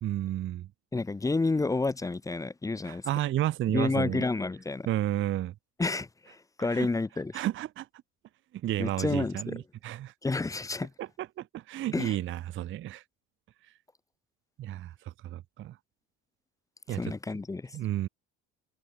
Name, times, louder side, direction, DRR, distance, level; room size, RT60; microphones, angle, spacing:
voice 1, 0.0-0.7 2.8-4.2 4.9-5.5 6.6-6.9 7.3-7.9 8.6-10.1 11.0-13.0 14.6-14.9 15.2-15.8 16.9-17.1 17.7-18.1, right 13 dB, 40° right, 0.5 m, -32 dB
voice 2, 0.9-3.0 3.7-4.9 5.8-7.3 8.8-9.6 10.2-10.9 11.9-12.2 17.0-17.7, left 3 dB, 10° left, 0.5 m, -30 dB
cardioid pair, 105°, 32 cm